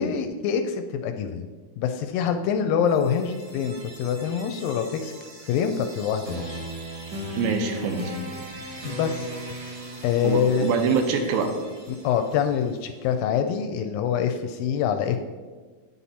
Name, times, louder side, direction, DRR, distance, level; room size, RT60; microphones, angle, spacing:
voice 1, 0.0-1.5 1.8-5.1 5.5-6.6 8.8-9.3 10.0-10.7 11.9-15.2, left 7 dB, 80° left, 7 dB, 2.1 m, -25 dB
sound 1, 2.8-12.8, equal, 55° right, 1.2 m, -39 dB
voice 2, 7.3-8.2 10.2-11.5, right 5 dB, 90° right, 5 dB, 2.7 m, -24 dB
9.6 x 5.8 x 4.1 m, 1.4 s
omnidirectional pair, 4.3 m